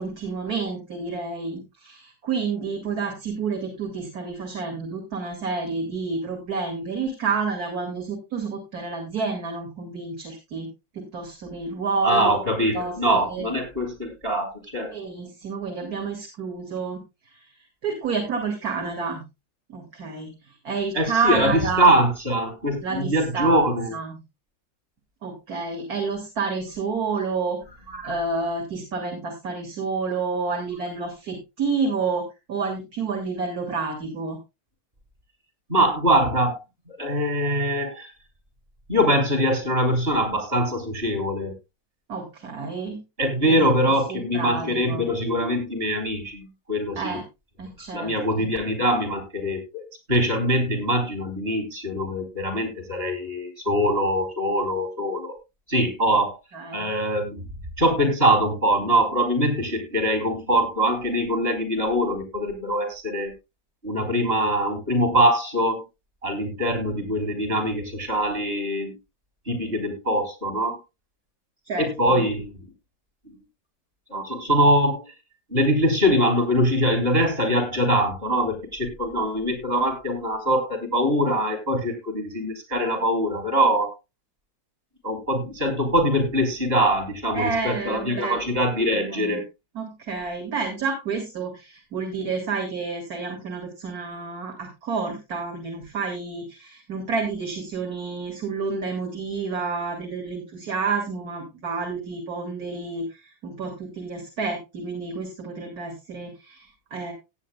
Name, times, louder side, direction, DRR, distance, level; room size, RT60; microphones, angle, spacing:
voice 1, 0.0-10.7 10.9-12.4 12.7-13.6 14.9-17.0 17.3-17.5 17.8-19.2 19.7-21.9 22.8-24.1 25.2-27.6 28.0-34.4 42.1-43.0 43.5-43.7 44.1-45.1 47.0-47.2 47.6-48.1 48.4-48.5 56.5-56.9 71.7-72.2 87.3-88.4 88.9-89.4 89.7-107.1, right 4 dB, 45° right, 2 dB, 2.6 m, -29 dB
voice 2, 12.0-14.9 20.9-23.9 27.9-28.1 35.7-36.6 36.9-38.1 38.9-41.5 43.2-47.2 47.9-55.3 55.7-56.4 56.7-57.5 57.8-63.3 63.8-65.8 66.2-68.9 69.5-70.8 71.8-72.5 73.3-73.4 74.1-75.0 75.5-83.9 85.0-89.4, equal, 25° right, 5 dB, 4.0 m, -23 dB
17.5 x 8.8 x 2.2 m, 0.25 s
omnidirectional pair, 2.3 m